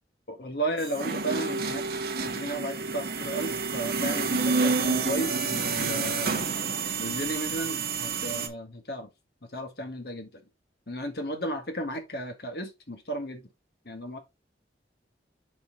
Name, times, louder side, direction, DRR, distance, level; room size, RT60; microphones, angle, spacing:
voice 1, 0.3-1.8 2.2-6.5 7.0-9.1 9.5-10.4 10.9-13.5 13.8-14.2, right 1 dB, 60° left, 1.7 m, -34 dB
sound 1, 0.8-8.5, right 4 dB, 55° right, 1.2 m, -29 dB
6.5 x 4.4 x 3.7 m
head